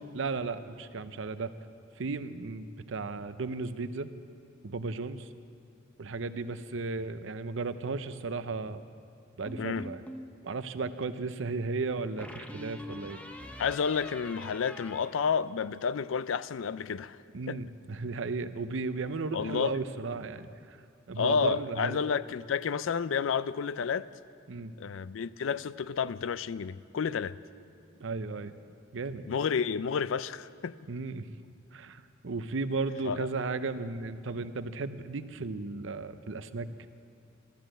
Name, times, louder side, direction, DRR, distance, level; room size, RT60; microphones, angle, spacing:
voice 1, 0.1-1.5 2.0-4.1 4.6-5.3 6.0-8.8 9.4-10.0 10.4-13.2 17.3-20.8 21.1-22.0 24.5-24.7 28.0-28.5 28.9-29.3 30.9-31.3 31.7-36.7, right 3 dB, 70° right, 0.6 m, -35 dB
sound 1, 9.5-10.3 12.2-16.0, left 1 dB, 5° left, 0.8 m, -45 dB
voice 2, 9.6-9.9 13.6-17.2 17.5-17.6 19.3-19.8 21.2-24.1 24.8-27.4 29.3-30.7 33.1-33.3, left 6 dB, 75° left, 0.4 m, -30 dB
13.5 x 12.5 x 7.7 m
head